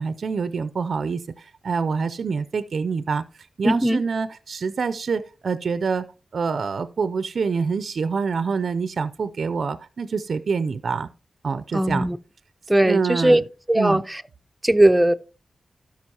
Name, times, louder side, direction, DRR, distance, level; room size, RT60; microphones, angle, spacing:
voice 1, 0.0-6.1 6.3-11.1 11.4-12.1 12.8-13.4 13.8-14.0, right 5 dB, 70° right, 0.4 m, -26 dB
voice 2, 3.6-4.0 11.7-12.2 12.7-13.4 13.7-14.2 14.6-15.1, right 1 dB, 15° right, 0.6 m, -18 dB
13.5 x 5.7 x 2.8 m
cardioid pair, 40°, 0 cm